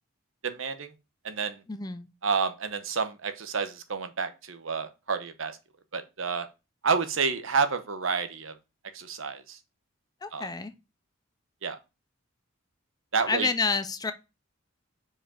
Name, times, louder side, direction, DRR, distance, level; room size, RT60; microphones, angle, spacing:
voice 1, 0.4-0.9 1.2-1.6 2.2-5.6 5.9-6.5 6.8-8.5 8.9-9.6 10.3-10.5 11.6-11.8 13.1-13.5, right 5 dB, 70° right, 0.9 m, -29 dB
voice 2, 1.7-2.1 10.2-10.7 13.3-14.1, left 4 dB, 20° left, 0.4 m, -29 dB
5.0 x 5.0 x 5.0 m
head